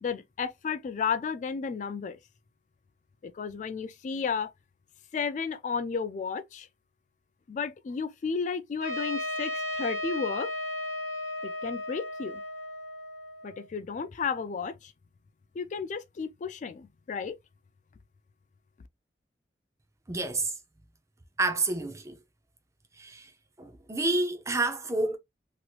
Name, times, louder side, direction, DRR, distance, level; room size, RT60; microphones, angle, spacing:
voice 1, 0.0-2.2 3.2-4.5 5.1-6.7 7.5-10.5 11.4-12.4 13.4-14.9 15.6-17.4, left 5 dB, 45° left, 0.3 m, -33 dB
Trumpet, 8.8-13.6, left 1 dB, 75° right, 1.1 m, -35 dB
voice 2, 20.1-20.6 21.4-22.2 22.9-23.3 23.6-25.2, right 2 dB, 15° right, 0.5 m, -29 dB
3.0 x 2.9 x 2.3 m
head